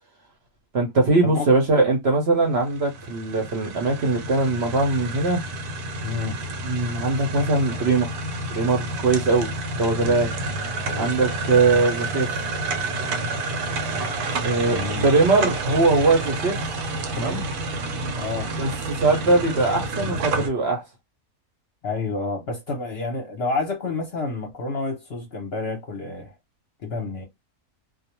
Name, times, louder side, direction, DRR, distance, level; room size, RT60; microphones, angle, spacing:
voice 1, 0.7-5.4 6.6-8.1 8.5-9.5 9.8-10.3 11.0-12.3 14.4-16.6 17.1-17.4 18.6-20.8, right 3 dB, 55° right, 0.8 m, -21 dB
sound 1, 2.5-20.5, right 2 dB, 80° right, 1.1 m, -29 dB
voice 2, 6.0-6.4 9.9-10.3 10.9-11.1 14.6-15.1 17.1-17.4 18.2-18.5 21.8-26.3 26.8-27.2, left 3 dB, 55° left, 0.8 m, -29 dB
2.4 x 2.1 x 2.9 m
omnidirectional pair, 1.6 m